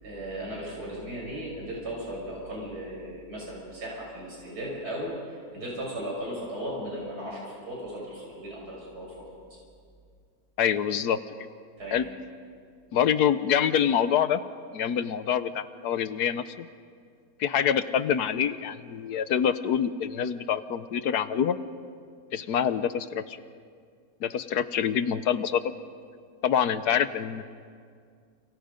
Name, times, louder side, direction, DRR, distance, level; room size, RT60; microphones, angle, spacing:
voice 1, 0.0-9.1 11.8-12.0, equal, 75° right, -3 dB, 7.1 m, -36 dB
voice 2, 10.6-11.2 11.9-12.1 12.9-14.4 14.7-16.7 17.4-21.6 22.3-23.4 24.2-25.6 26.4-27.4, left 8 dB, 75° left, 13 dB, 1.4 m, -26 dB
29.5 x 29.0 x 5.2 m, 2.2 s
omnidirectional pair, 1.7 m